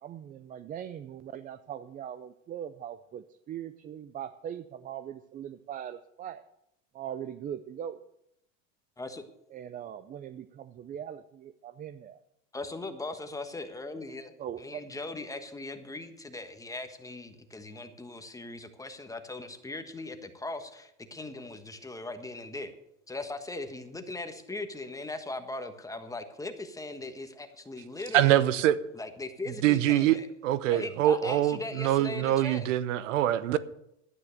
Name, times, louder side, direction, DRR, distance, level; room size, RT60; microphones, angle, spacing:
voice 1, 0.0-6.4 6.9-8.0 9.5-12.2 14.4-14.9, right 9 dB, 25° right, 0.4 m, -40 dB
voice 2, 12.5-14.3 14.6-22.7 23.1-28.3 28.9-30.3 30.7-32.7, left 2 dB, 10° left, 1.3 m, -39 dB
voice 3, 28.1-28.8 29.6-30.2 30.4-33.6, right 12 dB, 75° right, 0.9 m, -24 dB
12.0 x 9.5 x 6.5 m
supercardioid pair, 115°, 38 cm